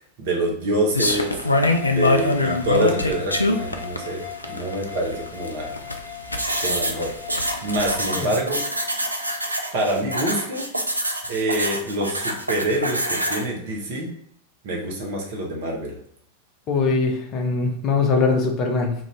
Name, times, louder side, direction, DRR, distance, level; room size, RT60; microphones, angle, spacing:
voice 1, 0.2-1.4 1.8-5.8 6.6-8.6 9.7-10.7 11.3-14.1 14.6-15.9, right 1 dB, 50° right, -1 dB, 0.8 m, -26 dB
sound 1, 0.9-8.0, left 2 dB, 80° left, 0.3 m, -23 dB
sound 2, 1.4-10.5, left 10 dB, 25° right, 0.9 m, -39 dB
sound 3, 6.4-13.5, right 1 dB, 85° right, 0.4 m, -27 dB
voice 2, 16.7-18.9, left 4 dB, 35° left, 2 dB, 0.6 m, -22 dB
2.6 x 2.5 x 3.1 m, 0.69 s
figure-of-eight pair, 90°, 0 cm